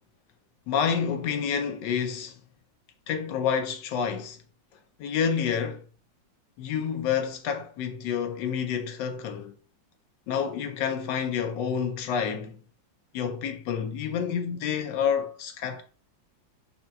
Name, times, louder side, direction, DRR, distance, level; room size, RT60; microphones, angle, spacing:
voice 1, 0.7-2.4 3.1-4.4 5.0-5.8 6.6-9.6 10.3-12.6 13.1-15.8, left 7 dB, 75° left, 1.2 m, -28 dB
4.2 x 3.6 x 2.2 m
omnidirectional pair, 2.1 m